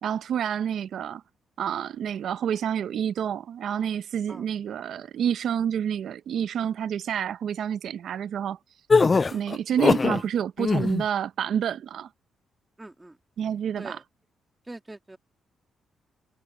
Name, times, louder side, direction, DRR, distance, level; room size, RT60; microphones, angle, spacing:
voice 1, 0.0-1.2 1.6-8.6 9.3-12.1 13.4-14.0, right 9 dB, 70° right, 0.6 m, -28 dB
sound 1, 8.9-10.2 10.6-11.0, left 4 dB, 30° left, 0.3 m, -21 dB
voice 2, 12.8-13.2 13.8-14.0 14.7-15.2, right 2 dB, 15° right, 2.7 m, -43 dB
cardioid pair, 110°, 0 cm